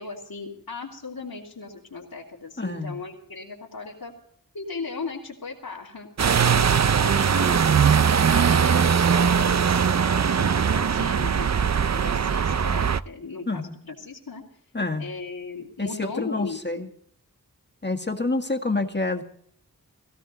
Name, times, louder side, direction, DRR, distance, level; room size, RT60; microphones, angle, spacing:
voice 1, 0.0-4.1 4.5-6.1 6.4-8.0 8.2-14.4 15.0-16.8, left 4 dB, 75° left, -6 dB, 2.9 m, -37 dB
voice 2, 2.6-3.0 13.5-13.7 14.7-15.1 15.8-16.9 17.8-19.2, left 3 dB, 30° left, 6 dB, 1.8 m, -27 dB
sound 1, 6.2-13.0, right 7 dB, 50° right, 0.6 m, -20 dB
18.5 x 16.5 x 4.1 m, 0.63 s
wide cardioid pair, 60°, 36 cm